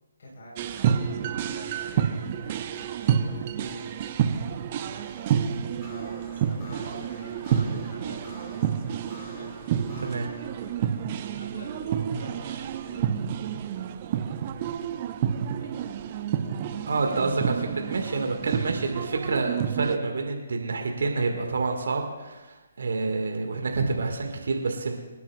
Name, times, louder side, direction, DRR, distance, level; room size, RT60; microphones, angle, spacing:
voice 1, 0.2-4.5 5.9-8.7 9.3-9.5 11.3-13.1 15.6-15.9, equal, 55° left, -3 dB, 3.9 m, -46 dB
sound 1, 0.6-20.0, right 8 dB, 35° right, 0.8 m, -29 dB
sound 2, 4.9-14.2, left 2 dB, 30° left, 4.7 m, -49 dB
voice 2, 10.0-10.3 16.9-25.0, right 3 dB, 60° right, 3 dB, 1.7 m, -28 dB
25.0 x 10.5 x 2.3 m, 1.2 s
figure-of-eight pair, 135°, 0 cm